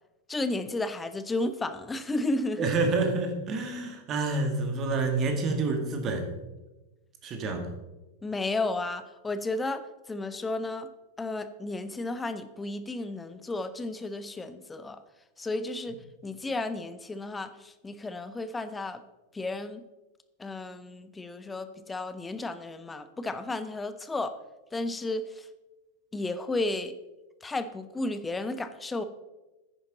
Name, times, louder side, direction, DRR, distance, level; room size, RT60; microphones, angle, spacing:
voice 1, 0.3-2.7 8.2-10.9 11.2-15.0 15.4-19.0 19.3-19.8 20.4-24.3 24.7-25.4 26.1-26.9 27.4-29.0, left 2 dB, 10° left, 11 dB, 0.7 m, -33 dB
voice 2, 2.6-6.3 7.2-7.7, right 3 dB, 30° right, 4 dB, 1.8 m, -28 dB
10.5 x 9.8 x 4.0 m, 1.1 s
figure-of-eight pair, 90°, 0 cm